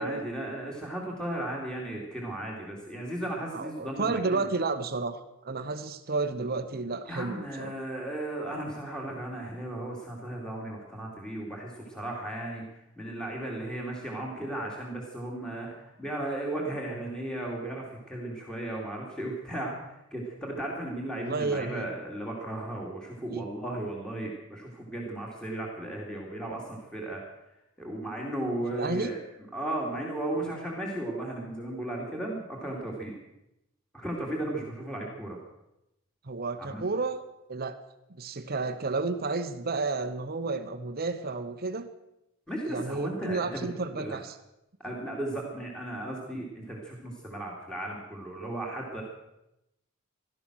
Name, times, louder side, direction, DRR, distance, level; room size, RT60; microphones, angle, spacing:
voice 1, 0.0-4.4 7.0-27.2 27.8-29.2 29.5-33.1 33.9-35.4 36.6-36.8 42.5-43.7 44.0-44.2 44.8-49.0, right 1 dB, 5° left, -2 dB, 2.6 m, -35 dB
voice 2, 3.5-7.7 21.2-21.9 23.3-23.5 28.8-29.1 36.2-37.2 37.5-37.8 38.1-41.9 42.7-44.3, right 3 dB, 45° right, 9 dB, 0.9 m, -31 dB
17.0 x 12.5 x 6.3 m, 0.88 s
head